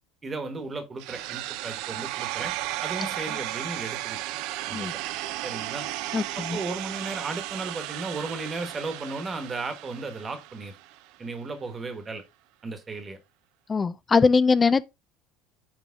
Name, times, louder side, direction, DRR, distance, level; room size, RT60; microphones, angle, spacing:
voice 1, 0.2-2.5 2.8-4.2 4.7-4.9 5.4-5.9 6.3-10.7 11.2-12.2 12.6-13.2, right 3 dB, 15° right, 1.3 m, -35 dB
sound 1, 1.0-11.0, right 16 dB, 60° right, 0.5 m, -34 dB
voice 2, 6.1-6.6 13.7-14.8, left 4 dB, 15° left, 0.3 m, -21 dB
9.5 x 3.4 x 3.5 m
cardioid pair, 170°, 0 cm